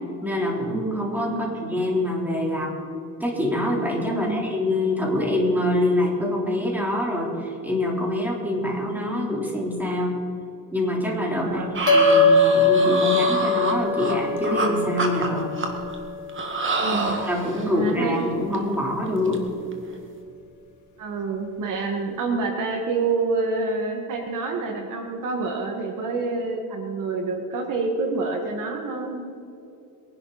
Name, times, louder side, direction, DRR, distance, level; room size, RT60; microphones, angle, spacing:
voice 1, 0.2-2.7 3.2-10.2 10.7-11.6 11.9-15.5 17.2-19.4, left 1 dB, 5° right, -3 dB, 4.0 m, -25 dB
voice 2, 1.3-1.6 4.0-4.4 11.4-11.8 16.8-17.2 17.7-18.2 21.0-29.2, right 3 dB, 70° right, 3 dB, 2.1 m, -27 dB
sound 1, 11.7-14.7 15.0-15.9 16.3-17.7 18.1-18.2 18.5-18.7 19.1-19.4 19.7-19.9, right 3 dB, 35° right, 2.1 m, -27 dB
sound 2, 11.9-16.6, left 3 dB, 60° left, 2.1 m, -21 dB
22.5 x 11.5 x 4.4 m, 2.5 s
cardioid pair, 115°, 34 cm